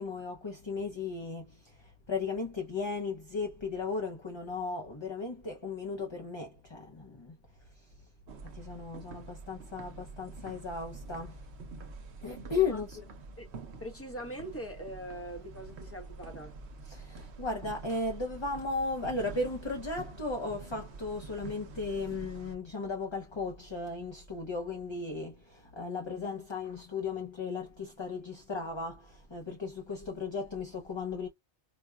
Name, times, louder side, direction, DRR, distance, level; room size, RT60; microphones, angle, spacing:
voice 1, 0.0-7.4 7.8-7.9 8.5-11.4 12.2-13.0 16.9-31.3, left 4 dB, 30° left, 0.6 m, -36 dB
sound 1, 8.3-22.6, right 3 dB, 70° right, 1.0 m, -47 dB
voice 2, 12.5-13.0 13.4-13.5 13.8-16.6, right 1 dB, 15° left, 0.9 m, -42 dB
4.9 x 2.2 x 2.3 m
omnidirectional pair, 1.1 m